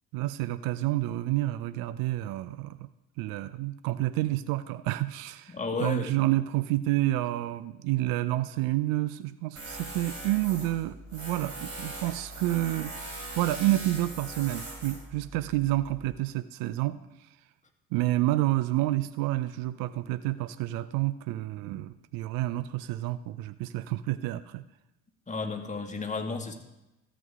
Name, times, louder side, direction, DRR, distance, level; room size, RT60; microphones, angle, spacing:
voice 1, 0.1-2.9 3.2-5.5 5.8-13.0 13.4-17.0 17.9-24.6, right 16 dB, 65° right, 14 dB, 0.6 m, -29 dB
voice 2, 5.5-6.1 25.3-26.5, left 4 dB, 20° left, 3 dB, 1.9 m, -32 dB
Tools, 9.6-16.1, right 2 dB, 40° right, 3.4 m, -41 dB
13.5 x 8.3 x 3.6 m, 0.91 s
hypercardioid pair, 55°, 37 cm